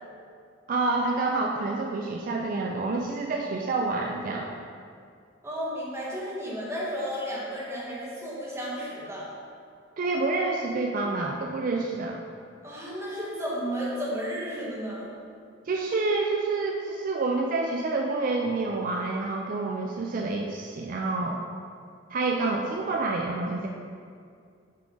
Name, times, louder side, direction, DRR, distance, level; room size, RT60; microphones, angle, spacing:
voice 1, 0.7-4.5 10.0-12.2 15.7-21.4 22.1-23.7, right 3 dB, 45° right, 0 dB, 0.3 m, -28 dB
voice 2, 5.4-9.3 12.6-15.1, equal, 15° right, -6 dB, 1.2 m, -33 dB
5.7 x 4.8 x 3.8 m, 2.3 s
head